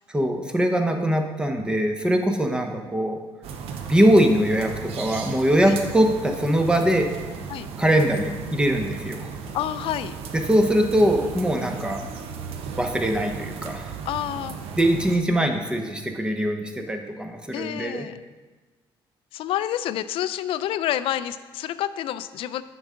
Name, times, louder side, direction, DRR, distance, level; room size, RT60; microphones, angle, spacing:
voice 1, 0.1-3.2 3.9-7.1 7.8-9.3 10.5-12.0 12.8-13.9 14.8-18.1, right 1 dB, 10° right, 4 dB, 0.7 m, -22 dB
sound 1, 3.4-15.2, right 6 dB, 80° right, 0.7 m, -36 dB
voice 2, 9.5-10.1 14.1-14.6 17.5-18.1 19.3-22.6, left 12 dB, 70° left, 14 dB, 0.4 m, -28 dB
9.3 x 5.5 x 3.6 m, 1.3 s
cardioid pair, 145°, 10 cm